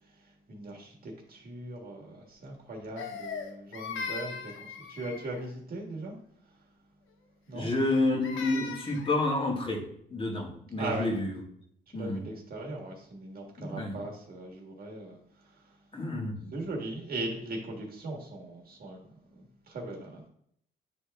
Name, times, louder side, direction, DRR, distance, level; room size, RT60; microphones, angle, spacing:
voice 1, 0.0-6.2 6.4-6.5 7.5-7.7 10.8-11.1 11.9-15.8 16.5-20.3, right 2 dB, 50° right, 0 dB, 1.5 m, -39 dB
Crying sobbing, 3.0-5.5 7.7-9.2, left 5 dB, 80° left, 0.8 m, -39 dB
voice 2, 7.5-9.8 10.1-11.3 11.9-12.2 13.6-14.0 15.9-16.5, left 2 dB, 25° left, 0 dB, 1.8 m, -29 dB
8.8 x 3.4 x 3.4 m, 0.67 s
cardioid pair, 90°, 20 cm